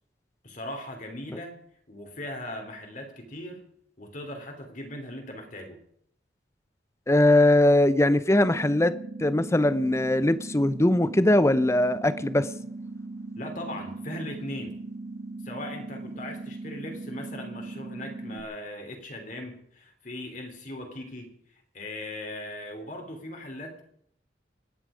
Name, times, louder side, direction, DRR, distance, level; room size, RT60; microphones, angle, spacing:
voice 1, 0.4-1.6 1.9-3.6 4.0-5.8 13.3-14.8 15.4-21.3 21.7-23.8, left 1 dB, 45° left, 3.1 m, -39 dB
voice 2, 7.1-12.5, left 1 dB, 15° left, 0.6 m, -21 dB
sound 1, 8.4-18.4, right 2 dB, 65° right, 1.7 m, -39 dB
26.0 x 9.9 x 5.1 m
head